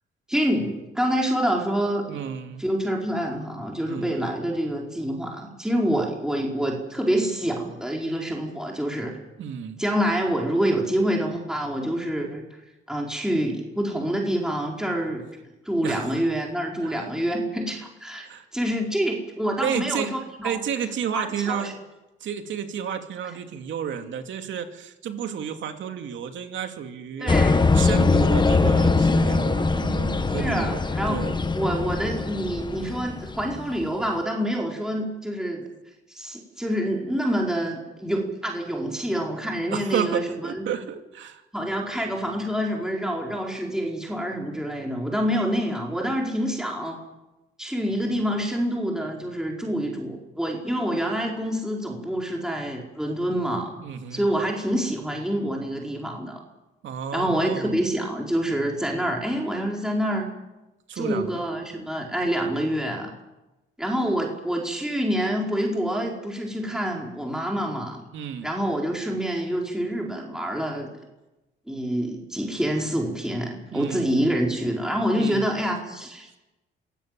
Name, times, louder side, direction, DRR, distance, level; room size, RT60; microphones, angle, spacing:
voice 1, 0.3-2.2 2.6-9.1 9.8-12.4 12.9-15.2 15.6-18.3 18.5-20.6 21.1-21.7 27.2-27.6 30.4-31.2 31.5-35.6 36.1-40.6 41.5-47.0 47.6-53.7 54.1-56.4 57.1-60.3 60.9-63.1 63.8-68.0 68.4-70.9 71.7-76.4, equal, 5° right, -1 dB, 4.7 m, -27 dB
voice 2, 2.1-2.7 3.9-4.3 9.4-9.8 15.8-16.2 16.8-17.1 18.2-18.5 19.6-20.1 20.4-21.7 22.2-27.3 27.7-30.8 31.1-31.4 39.7-41.4 53.8-54.3 56.8-57.8 60.9-61.4 68.1-68.5 73.7-74.0 75.1-75.5, right 8 dB, 75° right, 6 dB, 2.5 m, -31 dB
sound 1, 27.3-33.7, left 3 dB, 20° left, 1.4 m, -22 dB
26.0 x 17.0 x 7.6 m, 1.0 s
cardioid pair, 90°, 20 cm